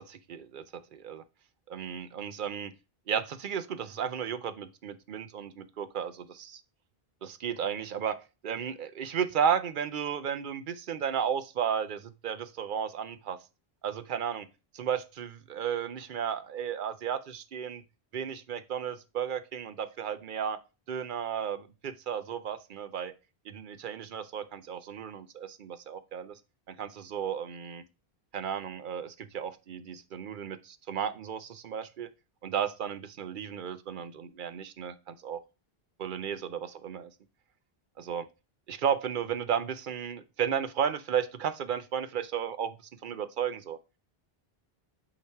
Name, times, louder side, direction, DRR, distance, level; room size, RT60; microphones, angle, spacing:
voice 1, 0.0-1.2 1.7-2.7 3.1-6.6 7.2-8.2 8.4-13.4 13.8-14.5 14.7-17.8 18.1-20.6 20.9-23.1 23.5-26.3 26.7-27.8 28.3-32.1 32.4-35.4 36.0-37.1 38.0-38.3 38.7-42.8 43.0-43.8, right 8 dB, 60° right, 12 dB, 0.7 m, -34 dB
8.3 x 2.9 x 4.5 m, 0.29 s
omnidirectional pair, 1.0 m